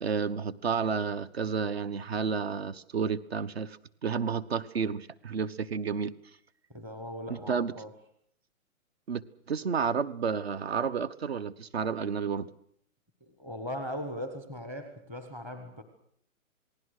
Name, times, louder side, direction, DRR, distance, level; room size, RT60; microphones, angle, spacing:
voice 1, 0.0-6.1 7.3-7.7 9.1-9.2 9.5-12.5, right 6 dB, 45° right, 19 dB, 1.1 m, -31 dB
voice 2, 6.7-7.9 13.2-15.8, equal, 5° right, 7 dB, 0.9 m, -39 dB
28.0 x 19.5 x 6.5 m, 0.66 s
hypercardioid pair, 170°, 42 cm